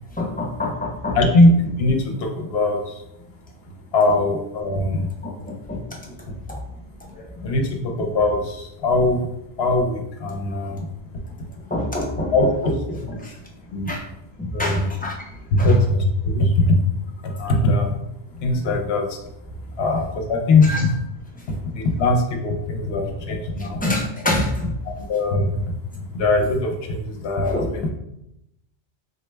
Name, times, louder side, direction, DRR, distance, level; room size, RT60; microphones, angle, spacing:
voice 1, 0.2-1.2 5.2-6.6 7.0-7.2 11.7-12.3 12.6-12.7 13.2-13.3 13.9-14.0 14.4-15.2 15.6-15.8 17.4-17.5 20.6-20.9 21.5-21.6 23.6-24.7 27.4-27.7, left 1 dB, 15° left, -2 dB, 0.3 m, -27 dB
voice 2, 1.1-3.0 3.9-5.1 7.4-9.3 9.6-10.9 12.3-12.7 13.0-13.4 13.7-13.9 14.5-14.9 15.6-16.8 17.2-18.0 18.4-19.2 19.8-20.9 21.5-23.8 24.8-27.9, left 2 dB, 70° left, 2 dB, 0.8 m, -21 dB
3.8 x 2.1 x 3.2 m, 0.83 s
omnidirectional pair, 1.1 m